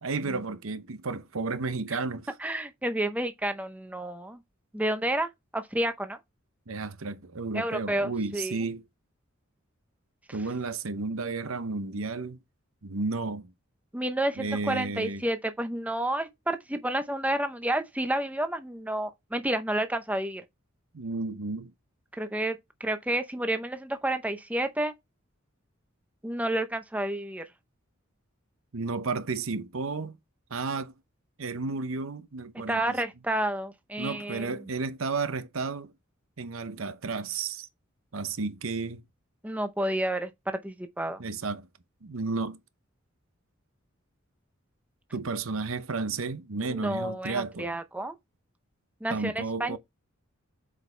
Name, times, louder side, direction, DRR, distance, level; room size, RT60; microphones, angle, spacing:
voice 1, 0.0-2.3 6.7-8.8 10.3-12.4 12.8-13.5 14.4-15.2 20.9-21.7 28.7-30.2 30.5-30.9 31.4-32.8 34.0-35.9 36.4-37.7 38.1-39.0 41.2-41.7 42.0-42.6 45.1-47.7 49.1-49.8, right 3 dB, 75° right, 0.8 m, -32 dB
voice 2, 2.4-4.4 4.7-6.2 7.5-8.6 13.9-20.4 22.1-24.9 26.2-27.5 32.7-34.6 39.4-41.2 46.6-48.1 49.0-49.8, right 1 dB, 5° right, 0.7 m, -30 dB
8.1 x 5.1 x 3.3 m
head